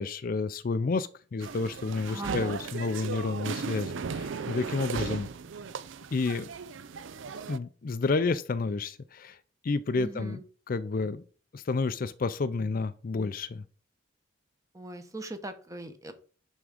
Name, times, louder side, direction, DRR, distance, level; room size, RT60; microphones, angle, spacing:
voice 1, 0.0-5.3 6.1-6.5 7.5-9.4 9.6-10.4 10.7-11.2 11.5-13.6, left 3 dB, 45° left, 0.4 m, -30 dB
sound 1, 1.4-7.6, right 5 dB, 75° right, 0.5 m, -36 dB
voice 2, 2.1-2.6 10.0-10.4 14.7-16.1, right 1 dB, 15° right, 0.9 m, -40 dB
11.0 x 3.6 x 5.0 m
head